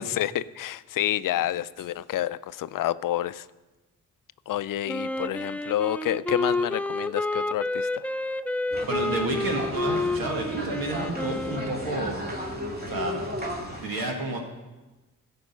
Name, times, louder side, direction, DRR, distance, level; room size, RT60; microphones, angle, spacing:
voice 1, 0.0-3.5 4.5-8.0 13.9-14.1, left 12 dB, 65° left, 16 dB, 0.5 m, -29 dB
Wind instrument woodwind instrument, 4.9-12.0, left 2 dB, 5° left, 0.4 m, -30 dB
sound 1, 8.7-13.9, left 1 dB, 25° right, 2.4 m, -34 dB
voice 2, 8.8-12.3 12.9-13.2 13.8-14.4, right 2 dB, 80° right, 1 dB, 2.0 m, -30 dB
14.5 x 5.4 x 6.8 m, 1.1 s
supercardioid pair, 50°, 35 cm